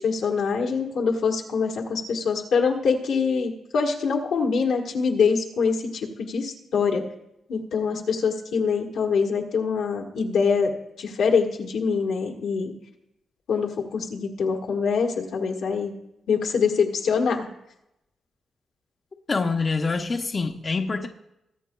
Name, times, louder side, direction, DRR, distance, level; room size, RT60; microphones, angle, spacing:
voice 1, 0.0-7.0 7.5-10.7 11.0-12.7 13.5-15.9 16.3-17.5, left 5 dB, 80° left, 1 dB, 1.5 m, -24 dB
voice 2, 19.3-21.1, left 4 dB, 45° left, 2 dB, 0.8 m, -25 dB
21.5 x 8.1 x 2.3 m, 0.86 s
cardioid pair, 60°, 0 cm